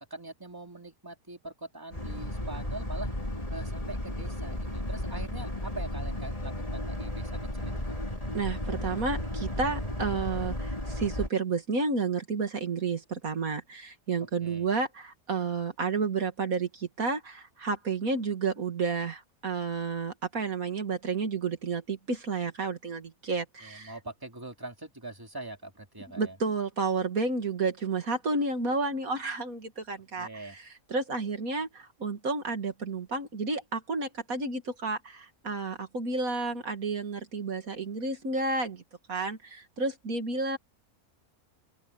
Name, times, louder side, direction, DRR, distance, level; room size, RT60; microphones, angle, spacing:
voice 1, 0.1-3.1 3.5-7.9 14.4-14.7 23.6-26.4 30.2-30.6, right 2 dB, 15° right, 3.0 m, -43 dB
Boat Water vehicle, 1.9-11.3, left 1 dB, 25° left, 4.5 m, -34 dB
voice 2, 8.3-23.9 26.2-38.8 39.1-40.6, right 4 dB, 70° right, 2.6 m, -31 dB
open air
omnidirectional pair, 1.5 m